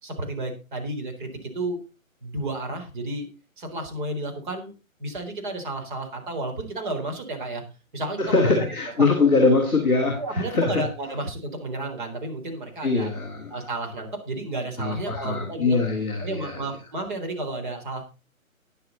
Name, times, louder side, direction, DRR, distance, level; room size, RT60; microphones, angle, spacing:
voice 1, 0.0-1.8 2.2-3.3 3.6-7.6 7.9-8.5 10.1-13.1 13.5-15.8 16.2-18.0, right 2 dB, 35° right, 4 dB, 4.0 m, -32 dB
voice 2, 8.2-10.9 12.8-13.5 14.8-16.6, left 3 dB, 5° left, -9 dB, 0.7 m, -22 dB
13.0 x 10.0 x 4.0 m, 0.32 s
figure-of-eight pair, 150°, 42 cm